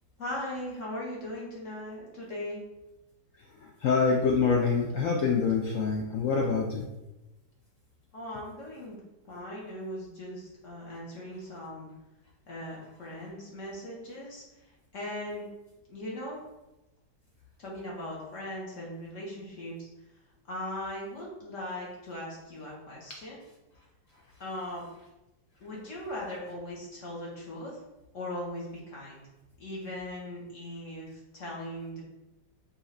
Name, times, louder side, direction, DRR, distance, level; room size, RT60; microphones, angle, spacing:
voice 1, 0.2-2.6 8.1-9.0 9.2-11.9 12.5-15.5 15.9-16.4 17.6-19.9 20.5-23.4 24.4-24.8 25.6-27.8 28.1-29.2 29.6-32.0, left 1 dB, 50° left, -4 dB, 1.2 m, -39 dB
voice 2, 3.8-6.8, left 5 dB, 70° left, -1 dB, 0.7 m, -25 dB
4.6 x 2.8 x 3.2 m, 0.99 s
omnidirectional pair, 1.8 m